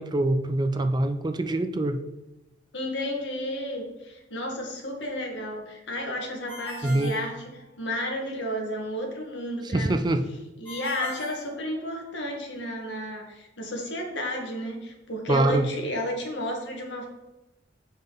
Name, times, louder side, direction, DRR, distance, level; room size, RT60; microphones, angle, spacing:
voice 1, 0.0-2.0 6.8-7.1 9.6-10.2 15.3-15.7, right 2 dB, 25° right, 8 dB, 0.4 m, -24 dB
voice 2, 2.7-7.4 7.8-10.1 10.6-17.1, left 1 dB, 75° left, 1 dB, 1.7 m, -32 dB
Ringtone, 6.5-8.1 10.7-12.3, left 1 dB, 10° left, 2.0 m, -41 dB
7.4 x 5.4 x 3.9 m, 0.97 s
head